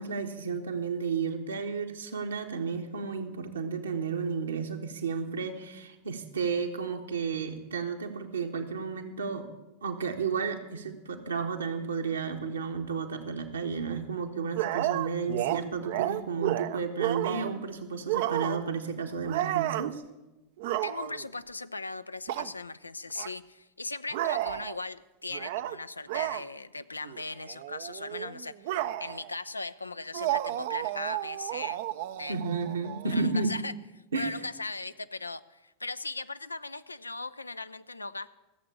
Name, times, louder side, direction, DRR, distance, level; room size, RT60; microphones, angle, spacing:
voice 1, 0.0-9.5 9.8-20.0 32.3-33.6 34.1-34.4, right 5 dB, 75° right, 4 dB, 1.3 m, -32 dB
sound 1, 14.6-17.6 18.1-18.8 19.2-19.9 20.6-21.3 22.3-22.5 23.2-23.3 24.1-24.8 25.3-25.8 26.1-26.4 27.0-27.2 27.5-29.3 30.1-33.5, right 14 dB, 55° right, 0.5 m, -32 dB
voice 2, 20.8-31.8 32.2-32.4 33.1-33.7 34.1-38.3, left 3 dB, 85° left, 14 dB, 0.4 m, -38 dB
14.5 x 7.7 x 8.4 m, 1.0 s
figure-of-eight pair, 85°, 0 cm